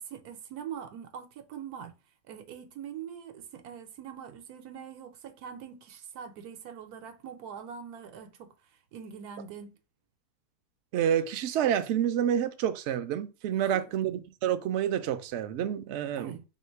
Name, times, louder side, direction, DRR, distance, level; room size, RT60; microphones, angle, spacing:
voice 1, 0.0-2.0 2.3-9.8 13.5-13.9 16.2-16.4, right 8 dB, 85° right, 1.2 m, -43 dB
voice 2, 10.9-16.4, right 9 dB, 65° right, 0.7 m, -28 dB
3.0 x 2.9 x 4.4 m
omnidirectional pair, 1.6 m